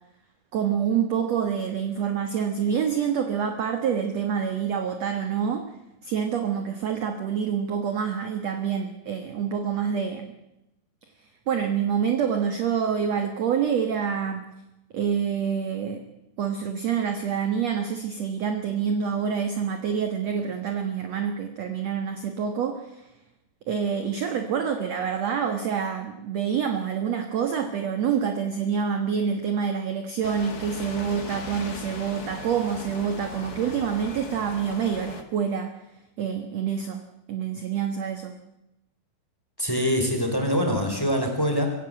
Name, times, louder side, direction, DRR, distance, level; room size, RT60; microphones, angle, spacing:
voice 1, 0.5-5.7 6.0-10.3 11.5-14.4 14.9-16.0 16.4-23.1 23.7-35.7 36.2-37.0 37.3-38.3, right 7 dB, 60° right, 6 dB, 1.8 m, -27 dB
sound 1, 30.2-35.2, left 4 dB, 65° left, 0.9 m, -38 dB
voice 2, 39.6-41.7, equal, 5° left, 3 dB, 3.6 m, -24 dB
25.0 x 16.0 x 7.7 m, 0.92 s
omnidirectional pair, 4.8 m